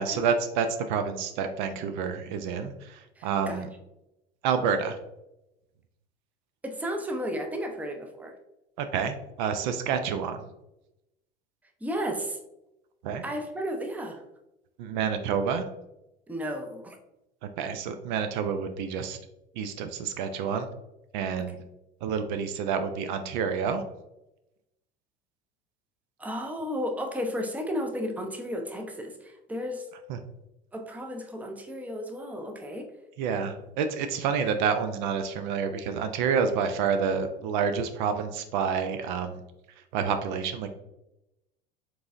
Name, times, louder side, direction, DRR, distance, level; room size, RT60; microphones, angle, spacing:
voice 1, 0.0-3.7 4.4-5.0 8.8-10.5 13.0-13.2 14.8-15.6 17.6-19.2 19.6-20.7 21.1-21.6 22.0-23.8 30.1-30.2 33.2-39.4 39.9-40.7, right 6 dB, 55° right, 7 dB, 0.5 m, -28 dB
voice 2, 3.2-3.6 6.6-8.3 11.8-12.4 13.2-14.2 16.3-17.0 26.2-29.9 30.7-32.9, equal, 5° right, 3 dB, 0.6 m, -33 dB
4.6 x 3.9 x 2.5 m, 0.91 s
figure-of-eight pair, 70°, 29 cm